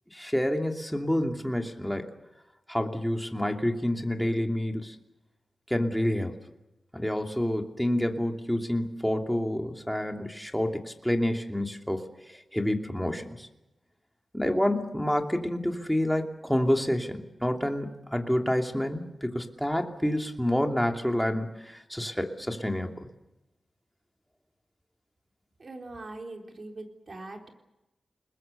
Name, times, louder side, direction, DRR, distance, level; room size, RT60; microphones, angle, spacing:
voice 1, 0.1-2.1 2.7-4.9 5.7-6.3 6.9-12.0 12.3-13.5 14.3-23.1, left 1 dB, ahead, 3 dB, 2.8 m, -28 dB
voice 2, 25.6-27.5, right 2 dB, 50° right, 3 dB, 4.1 m, -42 dB
29.5 x 21.0 x 6.9 m, 0.97 s
wide cardioid pair, 100°, 0 cm